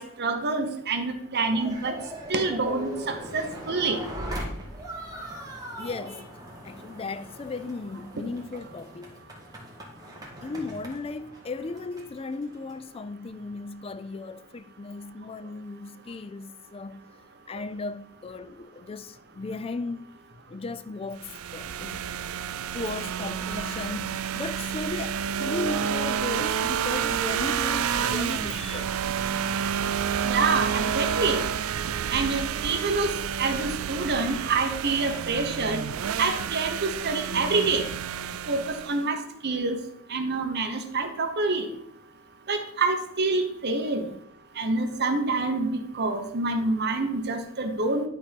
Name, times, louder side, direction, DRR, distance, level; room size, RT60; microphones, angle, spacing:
voice 1, 0.0-1.9 2.3-4.0 30.2-31.4 32.1-33.1 33.4-35.9 36.2-37.8 38.5-39.2 39.4-39.8 40.1-41.7 42.5-44.1 44.6-48.0, right 3 dB, 50° right, 1.1 m, -27 dB
sound 1, 1.5-12.8, equal, 20° right, 1.8 m, -40 dB
voice 2, 5.8-6.4 6.6-9.2 10.4-17.0 17.5-20.1 20.5-22.0 22.7-29.0 29.8-30.0 44.0-44.2, left 3 dB, 25° left, 0.3 m, -36 dB
sound 2, 21.2-39.0, right 8 dB, 70° right, 0.4 m, -29 dB
11.0 x 4.2 x 5.2 m
head